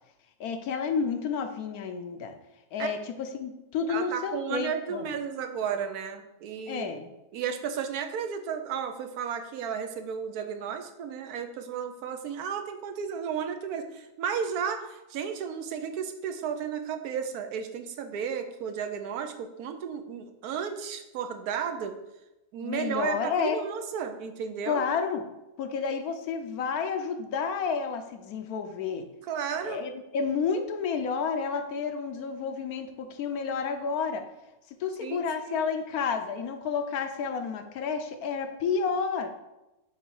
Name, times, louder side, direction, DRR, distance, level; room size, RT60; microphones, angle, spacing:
voice 1, 0.4-2.3 2.7-5.1 6.7-7.1 22.6-23.6 24.6-25.2 25.6-29.1 29.6-34.2 34.8-39.3, left 5 dB, 80° left, 6 dB, 1.2 m, -30 dB
voice 2, 3.9-6.9 7.3-21.9 22.5-24.8 29.3-29.8 35.0-35.6, right 7 dB, 85° right, 7 dB, 1.2 m, -33 dB
7.0 x 3.3 x 4.7 m, 0.97 s
omnidirectional pair, 1.6 m